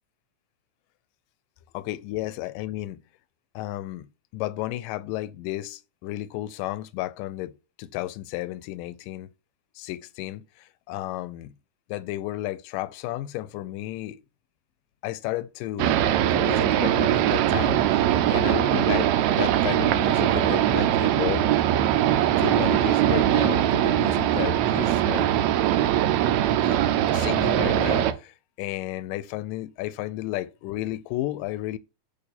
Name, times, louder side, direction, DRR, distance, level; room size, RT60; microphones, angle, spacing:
voice 1, 1.7-3.0 3.6-4.1 4.3-7.5 7.8-9.3 9.8-10.4 10.9-11.5 11.9-14.2 15.0-16.0 16.3-17.8 18.3-19.1 19.4-21.5 22.4-25.3 26.7-28.3 28.6-31.8, left 16 dB, 85° left, 2.1 m, -32 dB
sound 1, 15.8-28.1, right 11 dB, 85° right, 1.6 m, -21 dB
8.4 x 3.3 x 4.2 m
omnidirectional pair, 3.8 m